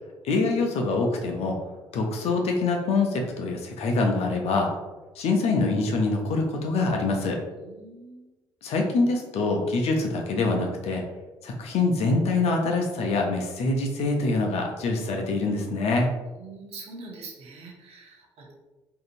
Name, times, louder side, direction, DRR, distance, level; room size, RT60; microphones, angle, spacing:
voice 1, 0.2-1.6 1.9-4.7 5.2-7.4 8.6-11.0 11.4-16.1, left 3 dB, 65° left, 2 dB, 0.5 m, -25 dB
voice 2, 7.5-8.4 16.3-18.6, right 3 dB, 60° right, -1 dB, 0.7 m, -44 dB
2.7 x 2.5 x 2.5 m, 1.1 s
hypercardioid pair, 50°, 12 cm